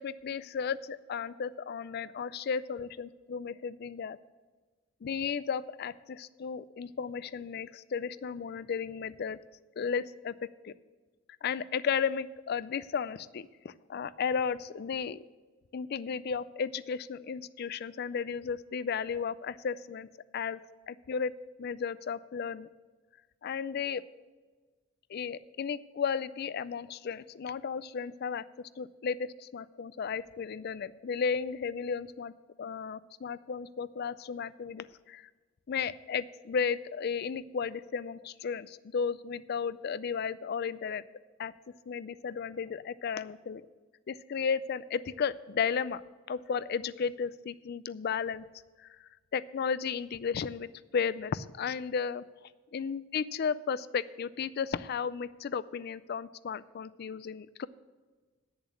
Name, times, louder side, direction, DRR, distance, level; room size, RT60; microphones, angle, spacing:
voice 1, 0.0-4.2 5.0-9.4 9.8-10.3 10.6-10.7 11.4-15.2 15.7-20.6 20.9-21.3 21.6-22.7 23.4-24.0 25.1-32.3 32.6-35.3 35.7-41.0 41.4-41.5 41.9-43.6 44.1-46.0 46.3-48.4 49.0-52.2 52.7-57.7, left 6 dB, 50° left, 17 dB, 0.4 m, -34 dB
8.2 x 7.2 x 8.3 m, 1.4 s
head